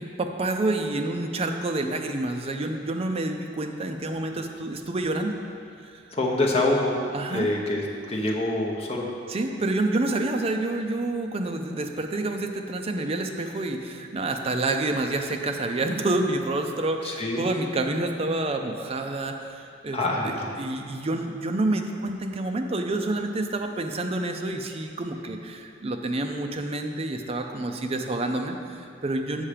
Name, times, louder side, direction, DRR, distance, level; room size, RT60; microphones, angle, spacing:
voice 1, 0.0-5.4 7.1-7.5 9.3-29.4, right 2 dB, 30° right, 4 dB, 0.5 m, -28 dB
voice 2, 6.1-6.9 7.3-9.1 17.0-17.5 19.9-20.5, left 2 dB, 30° left, -2 dB, 0.9 m, -25 dB
7.3 x 5.5 x 5.0 m, 2.4 s
head